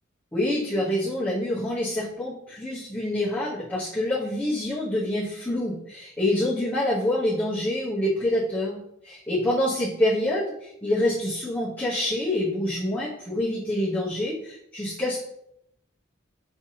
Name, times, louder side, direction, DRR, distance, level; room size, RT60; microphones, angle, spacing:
voice 1, 0.3-15.2, left 1 dB, 10° left, -11 dB, 1.0 m, -26 dB
5.3 x 3.4 x 2.8 m, 0.76 s
head